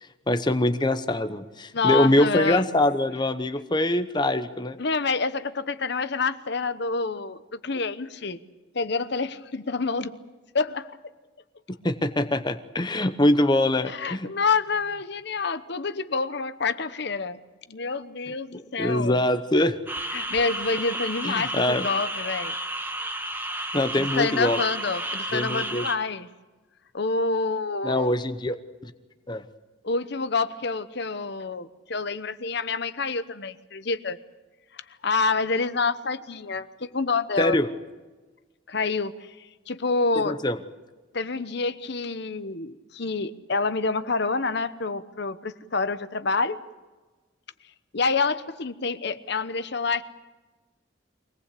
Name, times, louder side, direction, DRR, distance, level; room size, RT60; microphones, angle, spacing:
voice 1, 0.3-4.8 11.8-14.3 18.5-19.8 21.2-21.9 23.7-24.6 25.3-25.9 27.8-28.6 28.8-28.9 29.3-29.4 37.4-37.7 40.2-40.6, left 1 dB, 25° left, 9 dB, 0.9 m, -23 dB
voice 2, 1.7-2.7 4.8-8.4 8.7-10.1 10.5-10.9 13.9-17.4 17.7-19.2 20.1-22.5 24.0-26.3 26.9-28.2 29.8-34.2 35.0-37.6 38.7-40.4 41.1-46.6 47.9-50.0, left 4 dB, 60° left, 12 dB, 1.0 m, -27 dB
sound 1, 19.9-25.9, right 1 dB, 10° right, 1.6 m, -32 dB
24.0 x 19.0 x 8.4 m, 1.2 s
head